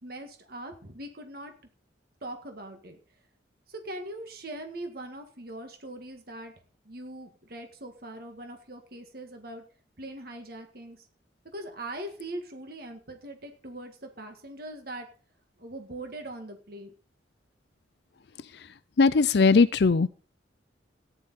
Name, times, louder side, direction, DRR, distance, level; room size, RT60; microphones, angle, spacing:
voice 1, 0.0-1.5 2.2-3.0 3.7-6.5 6.9-9.6 10.0-11.0 11.5-15.1 15.6-16.9, right 1 dB, 55° right, 1.9 m, -41 dB
voice 2, 19.0-20.1, left 4 dB, 60° left, 0.5 m, -20 dB
14.5 x 10.0 x 4.2 m
head